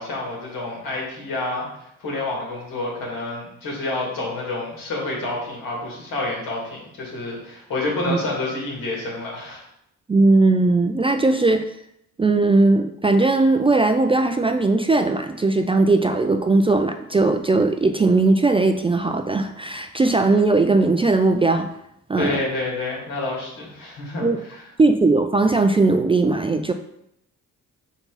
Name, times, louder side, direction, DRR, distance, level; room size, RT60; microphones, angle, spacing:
voice 1, 0.0-9.6 22.2-24.6, left 2 dB, 75° left, -3 dB, 2.5 m, -28 dB
voice 2, 10.1-11.6 12.2-21.7 22.1-22.4 24.2-24.4 24.8-26.7, right 3 dB, 15° right, 6 dB, 0.3 m, -18 dB
5.5 x 4.5 x 4.0 m, 0.78 s
cardioid pair, 85°, 33 cm